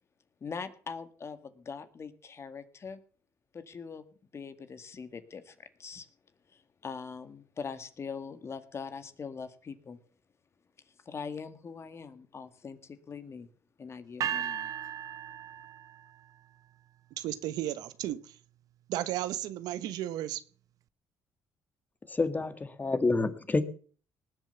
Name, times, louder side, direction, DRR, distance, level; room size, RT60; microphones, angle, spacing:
voice 1, 0.4-3.0 3.5-4.0 4.3-6.1 6.5-10.0 11.1-13.5 13.8-14.7, left 5 dB, 40° left, 1.9 m, -42 dB
sound 1, 14.2-16.3, right 9 dB, 60° right, 0.6 m, -36 dB
voice 2, 17.1-18.4 18.9-20.4, right 13 dB, 80° right, 1.0 m, -34 dB
voice 3, 22.1-23.6, left 3 dB, 25° left, 2.0 m, -28 dB
19.5 x 7.8 x 7.0 m
supercardioid pair, 75°, 7 cm